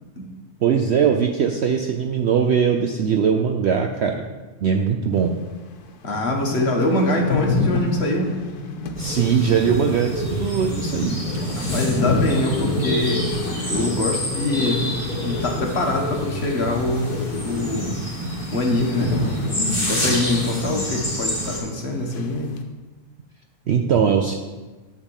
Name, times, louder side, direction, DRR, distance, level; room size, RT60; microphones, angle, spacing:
voice 1, 0.6-4.2 4.6-5.3 9.0-11.2 23.7-24.3, right 7 dB, 65° right, 4 dB, 0.7 m, -20 dB
sound 1, 5.5-5.6 5.9-6.0 6.2-16.4 16.6-21.1 21.4-21.5 22.1-22.6, left 3 dB, 85° left, 1.3 m, -28 dB
voice 2, 6.0-8.3 11.6-14.8 15.2-18.0 18.5-19.2 19.9-22.5, left 2 dB, 45° left, 1 dB, 1.4 m, -24 dB
sound 2, 9.0-21.6, equal, 30° left, 2.5 m, -28 dB
10.5 x 3.6 x 7.2 m, 1.2 s
omnidirectional pair, 1.6 m